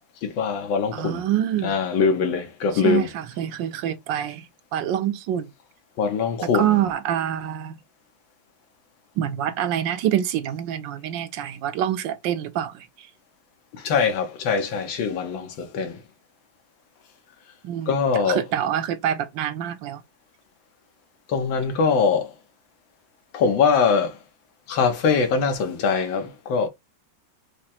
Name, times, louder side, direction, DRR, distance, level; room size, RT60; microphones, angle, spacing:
voice 1, 0.2-1.2 1.6-3.1 6.0-6.8 13.8-16.0 17.9-18.4 21.3-22.3 23.3-24.1 24.7-26.7, left 5 dB, 85° left, 1.7 m, -22 dB
voice 2, 0.9-1.8 2.8-4.4 4.7-5.5 6.5-7.8 9.2-12.7 17.6-20.0, right 10 dB, 75° right, 1.3 m, -26 dB
5.0 x 2.1 x 4.2 m
omnidirectional pair, 2.1 m